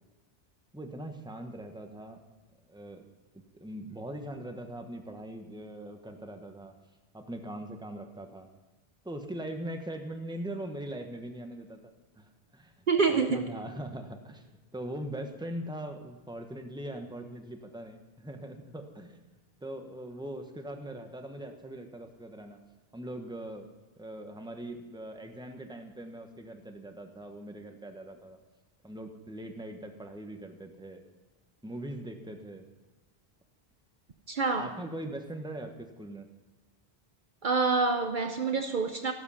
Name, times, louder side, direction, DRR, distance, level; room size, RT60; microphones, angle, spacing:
voice 1, 0.7-2.2 2.7-3.0 3.3-6.7 7.1-8.5 9.0-11.8 12.1-12.7 13.1-19.2 19.6-22.6 22.9-23.7 24.0-28.4 28.8-31.0 31.6-32.6 34.5-36.3, right 1 dB, 5° right, 4 dB, 1.1 m, -41 dB
voice 2, 12.9-13.4 34.3-34.7 37.4-39.1, right 4 dB, 55° right, 7 dB, 0.9 m, -27 dB
13.5 x 12.0 x 5.7 m, 1.2 s
omnidirectional pair, 1.0 m